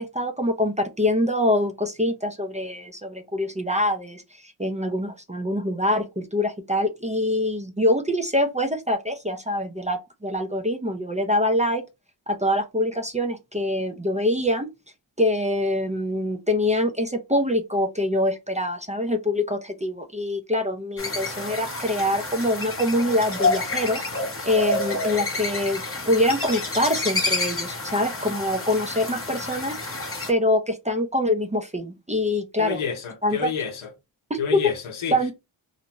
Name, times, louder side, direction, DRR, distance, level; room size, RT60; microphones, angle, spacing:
voice 1, 0.0-11.8 12.3-14.7 15.2-30.0 30.3-32.8 33.2-33.5 34.3-34.6 35.1-35.3, left 1 dB, 15° right, 0.4 m, -25 dB
sound 1, 21.0-30.3, left 2 dB, 25° left, 0.9 m, -29 dB
voice 2, 32.6-33.9 34.4-35.3, left 6 dB, 75° left, 0.8 m, -29 dB
2.6 x 2.1 x 2.8 m
cardioid pair, 45°, 49 cm